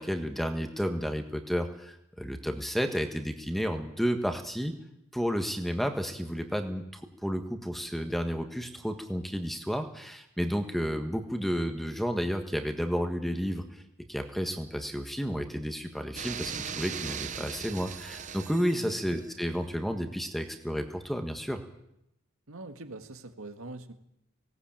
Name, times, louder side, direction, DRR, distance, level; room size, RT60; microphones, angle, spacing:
voice 1, 0.0-4.7 5.1-13.6 14.1-21.6, equal, ahead, 6 dB, 1.4 m, -31 dB
sound 1, 16.2-19.3, right 7 dB, 35° right, 0.8 m, -39 dB
voice 2, 22.5-23.9, right 2 dB, 80° right, 7 dB, 1.8 m, -43 dB
18.5 x 17.5 x 8.9 m, 0.80 s
head